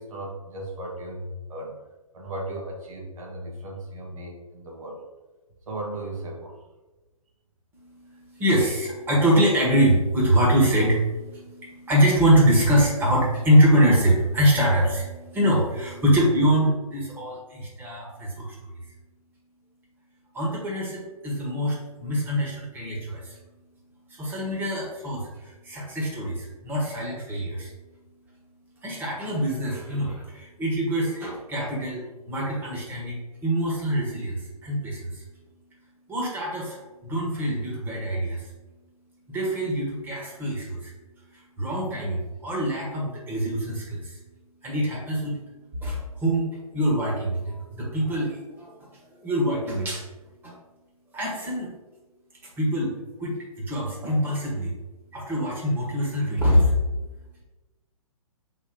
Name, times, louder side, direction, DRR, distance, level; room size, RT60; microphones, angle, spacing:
voice 1, 0.0-1.8 2.1-5.0 5.7-6.6, right 1 dB, 65° right, 0 dB, 1.9 m, -36 dB
voice 2, 7.7-18.5 20.3-23.4 24.1-27.7 28.8-35.2 36.1-38.5 39.3-40.9 41.3-44.2 44.6-45.4 45.8-48.7 49.2-50.0 50.4-50.5 51.1-51.7 52.6-52.9 53.2-54.7 55.1-56.8, equal, 10° right, -3 dB, 1.5 m, -24 dB
5.2 x 4.4 x 4.9 m, 1.2 s
hypercardioid pair, 150°, 19 cm